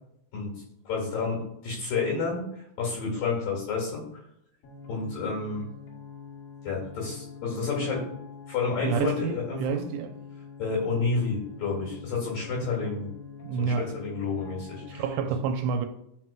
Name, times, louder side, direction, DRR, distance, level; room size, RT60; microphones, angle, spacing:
voice 1, 0.3-4.2 4.9-5.7 6.6-8.1 8.5-9.8 10.6-13.1 13.6-15.0, left 4 dB, 55° left, 3.2 m, -30 dB
sound 1, 4.6-15.3, left 6 dB, 80° left, 4.1 m, -45 dB
voice 2, 8.8-10.2 12.8-12.9 13.4-13.9 14.9-15.9, right 6 dB, 80° right, 2.9 m, -28 dB
13.0 x 6.0 x 2.2 m
omnidirectional pair, 5.6 m